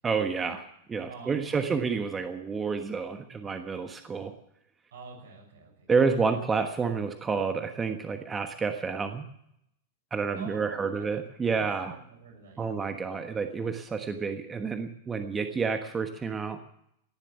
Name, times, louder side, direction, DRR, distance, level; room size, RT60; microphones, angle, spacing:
voice 1, 0.0-4.3 5.9-9.2 10.1-11.9 12.6-16.6, right 5 dB, 20° right, 7 dB, 1.3 m, -29 dB
voice 2, 1.1-1.9 4.9-5.9 10.3-11.1 11.4-12.8, right 5 dB, 75° right, 1 dB, 6.3 m, -47 dB
18.0 x 7.4 x 9.8 m, 0.75 s
hypercardioid pair, 115°, 0 cm